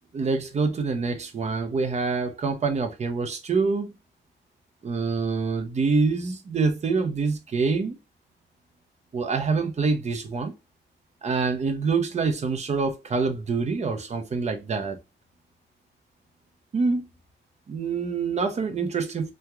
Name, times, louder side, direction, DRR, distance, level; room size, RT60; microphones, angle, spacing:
voice 1, 0.1-3.9 4.8-8.0 9.1-10.5 11.2-15.0 16.7-17.1 17.7-19.3, right 4 dB, 35° right, 0.6 m, -26 dB
2.9 x 2.2 x 2.3 m
cardioid pair, 120°, 20 cm